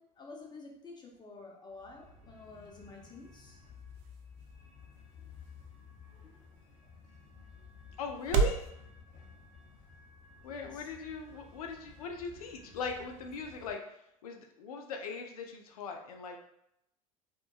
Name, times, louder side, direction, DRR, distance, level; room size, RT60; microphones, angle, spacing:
voice 1, 0.0-3.6 10.5-10.9, left 3 dB, 20° left, -1 dB, 0.7 m, -50 dB
sound 1, 1.7-13.8, left 5 dB, 45° left, 1.0 m, -54 dB
sound 2, 2.4-8.7, right 7 dB, 50° right, 0.4 m, -38 dB
voice 2, 8.0-8.7 10.4-13.8 14.2-16.4, left 5 dB, 75° left, 3 dB, 0.4 m, -39 dB
2.9 x 2.1 x 2.2 m, 0.80 s
hypercardioid pair, 75°, 19 cm